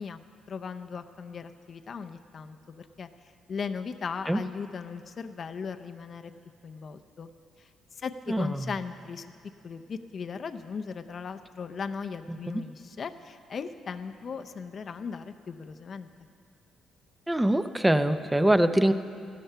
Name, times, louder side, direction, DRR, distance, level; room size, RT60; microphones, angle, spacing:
voice 1, 0.0-3.1 3.5-6.3 6.6-7.3 7.6-9.3 9.6-16.1, left 5 dB, 50° left, 8 dB, 0.6 m, -38 dB
voice 2, 8.3-8.7 12.3-12.6 17.3-18.9, right 1 dB, 10° right, 10 dB, 0.6 m, -24 dB
15.0 x 12.5 x 5.6 m, 2.3 s
cardioid pair, 90°, 0 cm